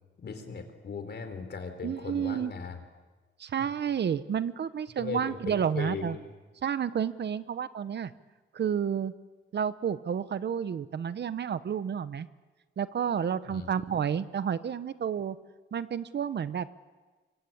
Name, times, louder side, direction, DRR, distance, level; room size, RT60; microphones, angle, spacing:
voice 1, 0.2-2.8 3.6-3.7 5.0-6.3 13.5-13.7, left 5 dB, 60° left, 8 dB, 3.9 m, -38 dB
voice 2, 1.8-2.5 3.4-6.2 6.6-8.1 8.5-9.1 9.5-12.3 12.8-15.4 15.7-16.7, right 8 dB, 60° right, 14 dB, 1.0 m, -30 dB
24.5 x 24.5 x 8.7 m, 1.3 s
wide cardioid pair, 135°, 20 cm